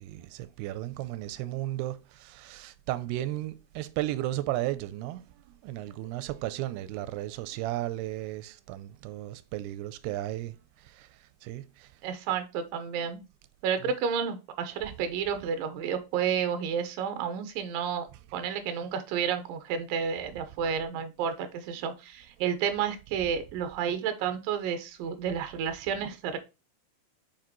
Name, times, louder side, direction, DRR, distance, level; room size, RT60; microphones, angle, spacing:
voice 1, 0.0-12.0 13.8-13.9, right 15 dB, 90° right, 2.6 m, -35 dB
voice 2, 12.0-13.2 13.6-26.4, right 7 dB, 70° right, 2.5 m, -31 dB
7.4 x 4.7 x 3.0 m
omnidirectional pair, 4.5 m